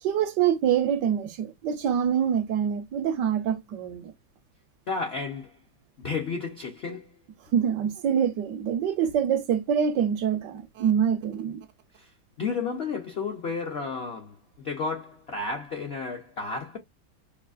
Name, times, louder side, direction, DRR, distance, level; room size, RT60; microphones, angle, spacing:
voice 1, 0.0-4.1 7.5-11.7, right 8 dB, 75° right, 1.1 m, -25 dB
voice 2, 4.9-5.6 6.0-7.1 12.0-12.1 12.4-16.8, left 4 dB, 70° left, 0.6 m, -32 dB
4.9 x 2.7 x 2.3 m
omnidirectional pair, 2.1 m